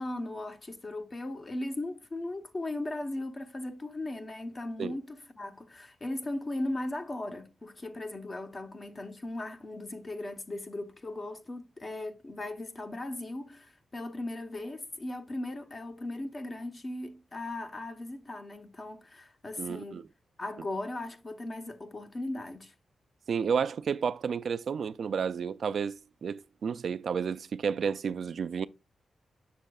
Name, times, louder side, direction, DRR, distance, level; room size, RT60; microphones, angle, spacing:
voice 1, 0.0-20.0 20.4-22.7, left 2 dB, 35° left, 1.0 m, -37 dB
voice 2, 19.6-20.0 23.3-28.7, right 6 dB, 65° right, 0.3 m, -31 dB
7.6 x 6.4 x 2.3 m
cardioid pair, 90°, 0 cm